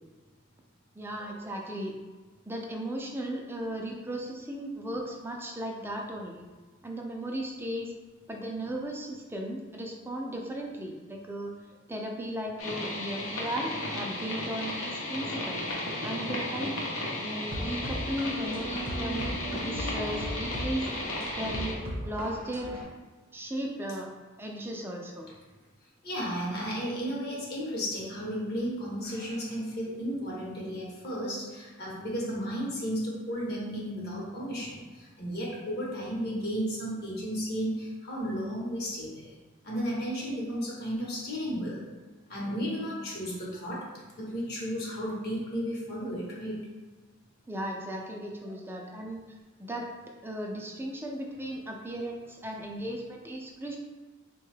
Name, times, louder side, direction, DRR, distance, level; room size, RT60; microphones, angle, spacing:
voice 1, 1.0-2.0 2.5-6.5 6.8-7.9 8.3-11.6 11.9-15.7 16.0-16.8 17.1-19.3 19.6-20.9 21.4-21.8 22.0-22.7 23.3-24.1 24.4-25.3 47.5-49.2 49.6-49.9 50.2-53.8, right 1 dB, 10° right, 1 dB, 0.4 m, -36 dB
sound 1, 12.6-21.7, left 1 dB, 85° left, 0.7 m, -35 dB
sound 2, 17.5-22.8, equal, 45° right, 0.7 m, -36 dB
voice 2, 26.0-39.3 39.6-41.8 42.3-43.9 44.2-46.7, equal, 50° left, -4 dB, 0.9 m, -33 dB
3.5 x 2.2 x 3.2 m, 1.3 s
head